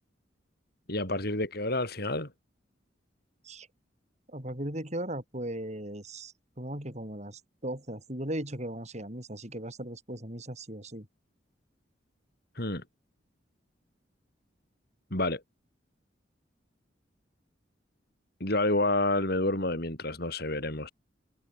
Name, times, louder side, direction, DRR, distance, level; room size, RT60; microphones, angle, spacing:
voice 1, 0.9-2.3 12.6-12.8 15.1-15.4 18.4-20.9, left 2 dB, 55° left, 6.3 m, -29 dB
voice 2, 4.3-11.1, right 1 dB, 40° right, 6.8 m, -37 dB
head